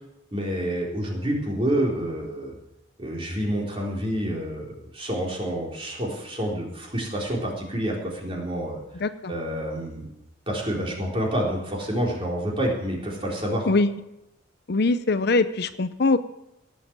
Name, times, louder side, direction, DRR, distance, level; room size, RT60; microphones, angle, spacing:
voice 1, 0.3-2.5 3.0-4.6 4.9-8.8 9.3-10.1 10.5-13.7, right 1 dB, 30° right, -2 dB, 4.1 m, -28 dB
voice 2, 9.0-9.3 13.7-13.9 14.7-16.2, left 3 dB, 55° left, 12 dB, 0.6 m, -22 dB
18.0 x 7.7 x 7.5 m, 0.90 s
head